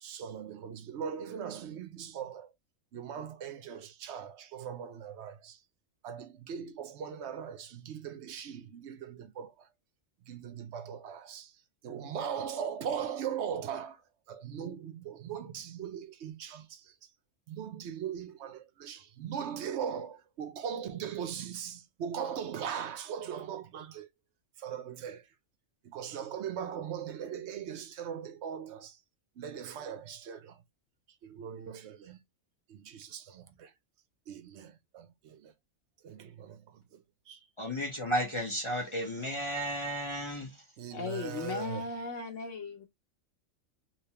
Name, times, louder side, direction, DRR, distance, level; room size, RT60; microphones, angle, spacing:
voice 1, 0.0-2.5 2.9-5.6 6.0-9.7 10.3-11.6 11.8-14.0 14.3-17.0 17.5-24.1 24.6-25.3 25.8-29.0 29.4-30.6 31.2-32.2 32.7-33.7 34.3-35.5 36.0-37.4 40.8-41.8, right 8 dB, 65° right, 0.8 m, -39 dB
voice 2, 37.6-40.5, equal, 30° left, 0.6 m, -33 dB
voice 3, 40.9-42.9, left 4 dB, 65° left, 1.3 m, -37 dB
3.3 x 3.0 x 2.9 m
omnidirectional pair, 1.4 m